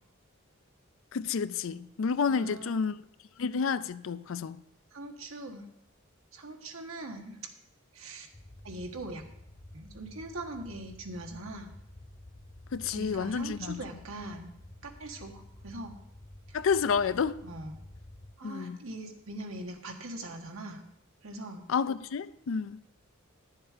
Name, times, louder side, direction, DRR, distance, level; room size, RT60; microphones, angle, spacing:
voice 1, 1.1-3.0 3.4-4.6 12.7-13.8 16.5-17.4 18.4-18.8 21.7-22.8, left 5 dB, 65° left, 0.4 m, -30 dB
voice 2, 2.3-2.9 4.9-5.7 6.3-7.4 7.9-8.3 8.6-9.2 9.7-11.7 12.9-14.5 14.8-16.0 16.5-16.6 17.4-17.8 18.4-20.8 21.2-21.7, right 2 dB, 75° right, 1.4 m, -41 dB
sound 1, 8.3-18.3, left 1 dB, 20° left, 0.6 m, -51 dB
10.5 x 7.3 x 4.9 m
head